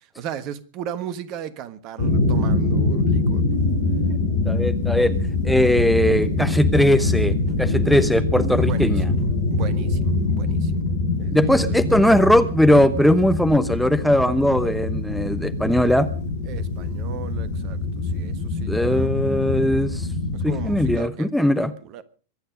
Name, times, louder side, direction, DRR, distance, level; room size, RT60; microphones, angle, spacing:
voice 1, 0.0-3.4 8.7-9.2 9.5-10.7 11.2-12.2 16.4-19.1 20.3-22.0, right 9 dB, 40° right, 1.4 m, -36 dB
sound 1, 2.0-21.0, left 2 dB, 65° left, 4.8 m, -24 dB
voice 2, 4.5-5.1 5.4-7.3 7.6-9.1 11.3-16.1 18.7-20.1 20.4-21.7, left 1 dB, ahead, 0.9 m, -19 dB
23.5 x 9.2 x 5.2 m
figure-of-eight pair, 90°, 0 cm